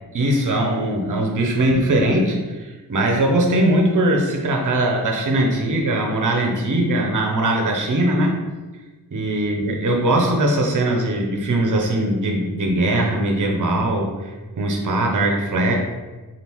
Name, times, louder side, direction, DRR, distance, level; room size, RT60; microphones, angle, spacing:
voice 1, 0.1-8.4 9.1-15.8, right 1 dB, 50° right, 1 dB, 0.7 m, -20 dB
3.4 x 2.5 x 2.9 m, 1.2 s
wide cardioid pair, 65°, 39 cm